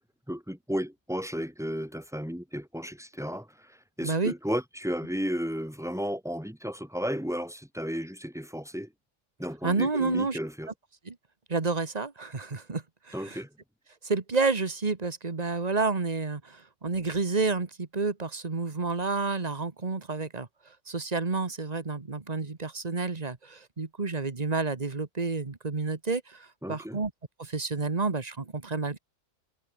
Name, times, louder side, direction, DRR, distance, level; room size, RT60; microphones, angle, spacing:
voice 1, 0.3-8.9 9.4-10.7 13.1-13.5 26.6-27.0, equal, ahead, 2.6 m, -33 dB
voice 2, 4.0-4.3 9.6-10.4 11.1-11.2 11.5-13.4 14.0-20.5 20.9-27.1 27.4-29.0, right 4 dB, 35° right, 1.7 m, -30 dB
omnidirectional pair, 1.3 m